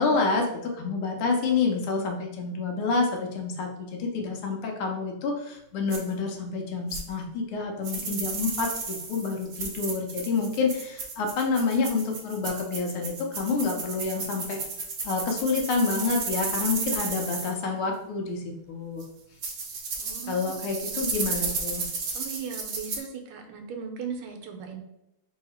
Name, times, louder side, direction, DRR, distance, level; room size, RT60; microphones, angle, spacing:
voice 1, 0.0-14.6 15.0-19.0 20.3-21.8, left 4 dB, 90° left, 1 dB, 1.7 m, -28 dB
sound 1, 5.9-6.0 6.9-7.0 7.8-17.5 19.0-19.1 19.4-23.0, right 4 dB, 60° right, 1.0 m, -33 dB
voice 2, 20.0-21.5 22.1-24.8, right 6 dB, 80° right, 4 dB, 1.6 m, -38 dB
3.9 x 2.8 x 4.2 m, 0.85 s
omnidirectional pair, 2.4 m